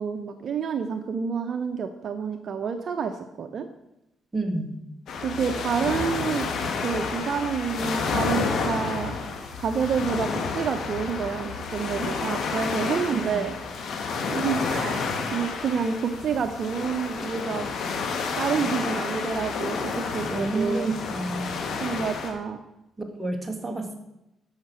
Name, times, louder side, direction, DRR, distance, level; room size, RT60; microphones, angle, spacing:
voice 1, 0.0-3.7 5.2-6.5 6.8-9.2 9.5-13.5 14.2-17.7 18.4-20.9 21.8-22.6, right 6 dB, 55° right, 7 dB, 0.8 m, -28 dB
voice 2, 4.3-4.7 13.1-13.4 20.3-21.6 23.1-24.0, right 2 dB, 15° right, 3 dB, 2.1 m, -29 dB
sound 1, 5.1-22.3, left 4 dB, 70° left, 2.0 m, -30 dB
14.0 x 5.9 x 6.2 m, 0.92 s
cardioid pair, 90°, 0 cm